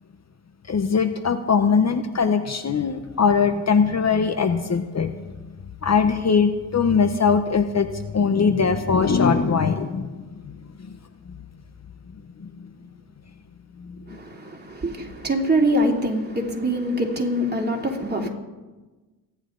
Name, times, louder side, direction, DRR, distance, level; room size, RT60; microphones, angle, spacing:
voice 1, 0.7-5.2 5.8-10.2 12.4-12.5 13.8-14.0, left 5 dB, 40° left, 1.0 m, -21 dB
voice 2, 14.1-18.3, right 1 dB, 25° right, 3.0 m, -24 dB
28.5 x 11.0 x 3.9 m
cardioid pair, 65°, 39 cm